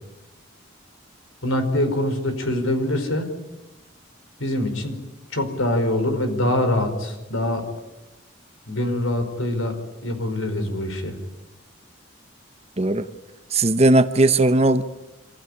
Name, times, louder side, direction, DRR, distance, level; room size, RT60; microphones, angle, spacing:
voice 1, 1.4-3.3 4.4-5.0 5.3-7.7 8.7-9.8 10.0-11.1, left 1 dB, 85° left, 5.0 m, -24 dB
voice 2, 12.8-13.1 13.5-14.8, right 2 dB, 30° right, 0.9 m, -17 dB
26.5 x 15.5 x 10.0 m
head